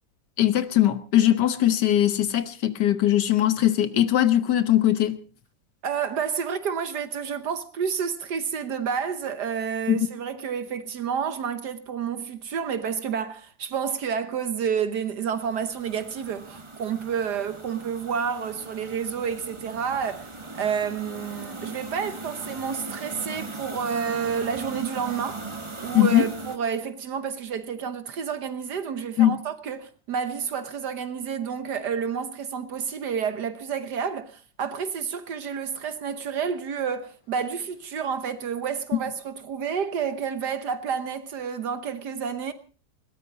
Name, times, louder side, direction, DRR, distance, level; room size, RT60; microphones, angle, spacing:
voice 1, 0.4-5.2 9.9-10.1 25.9-26.3 29.2-29.4, left 12 dB, 70° left, 1.7 m, -20 dB
voice 2, 5.8-20.3 20.6-25.4 25.8-42.5, right 7 dB, 70° right, 1.6 m, -30 dB
sound 1, 15.3-26.6, right 3 dB, 20° right, 1.4 m, -39 dB
21.0 x 17.0 x 4.0 m
omnidirectional pair, 1.9 m